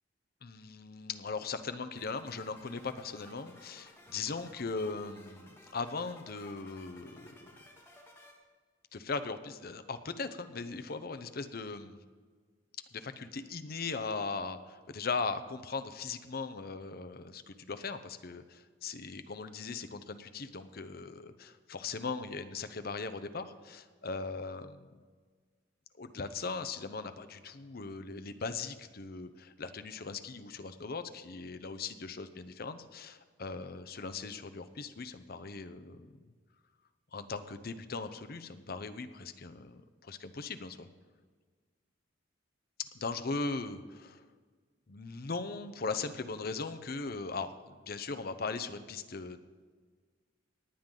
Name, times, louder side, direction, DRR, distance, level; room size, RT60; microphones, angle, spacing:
voice 1, 0.4-7.5 8.9-12.0 12.9-24.8 26.0-36.2 37.1-40.9 42.9-44.2 44.9-49.4, left 4 dB, 50° left, 11 dB, 0.7 m, -39 dB
sound 1, 2.0-8.3, left 1 dB, 10° left, 1.9 m, -57 dB
18.5 x 9.0 x 3.8 m, 1.5 s
head